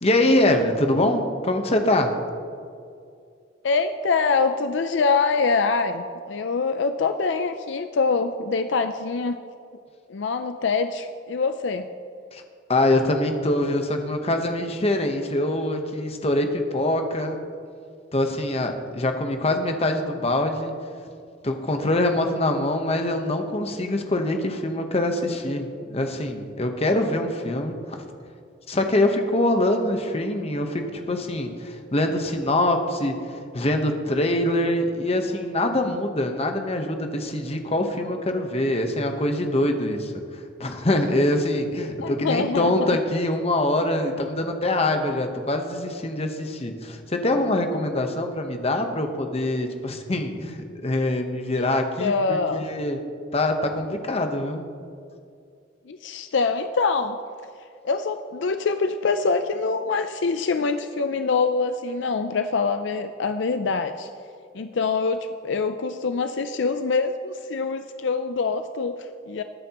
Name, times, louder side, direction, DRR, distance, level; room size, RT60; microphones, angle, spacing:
voice 1, 0.0-2.2 12.3-12.4 12.7-17.4 18.1-20.7 21.4-28.0 28.7-40.1 40.6-53.0 53.3-54.7, left 1 dB, 35° left, 5 dB, 1.0 m, -24 dB
voice 2, 3.6-9.4 10.1-11.9 42.0-43.0 51.6-52.6 55.9-57.2 57.8-64.1 64.5-69.4, left 4 dB, 70° left, 8 dB, 0.5 m, -24 dB
21.0 x 9.4 x 3.0 m, 2.4 s
head